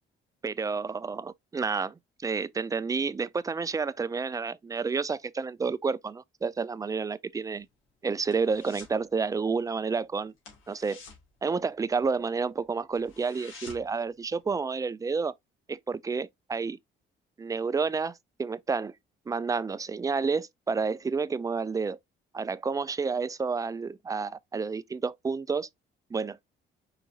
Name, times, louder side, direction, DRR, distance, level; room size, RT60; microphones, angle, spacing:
voice 1, 0.4-7.7 8.0-10.3 10.7-11.0 11.4-15.3 15.7-16.8 17.4-18.1 18.4-18.9 19.3-22.0 22.3-25.7 26.1-26.4, right 4 dB, 15° right, 0.3 m, -30 dB
sound 1, 7.4-9.0 9.3-9.6 9.9-10.0 10.4-12.2 12.6-12.7 12.9-14.0 14.4-14.5, left 4 dB, 85° left, 2.3 m, -49 dB
4.9 x 3.9 x 2.7 m
cardioid pair, 90°, 20 cm